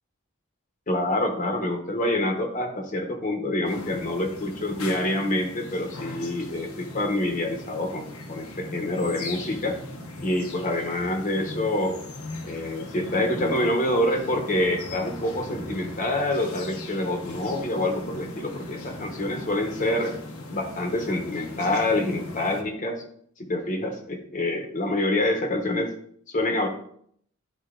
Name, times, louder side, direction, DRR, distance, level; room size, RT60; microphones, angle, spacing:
voice 1, 0.9-9.8 10.2-12.0 12.4-20.1 20.5-23.0 23.4-25.9 26.3-26.7, left 1 dB, 35° left, 2 dB, 1.0 m, -26 dB
sound 1, 3.6-22.6, left 2 dB, 85° left, 1.0 m, -39 dB
11.5 x 3.9 x 2.5 m, 0.65 s
head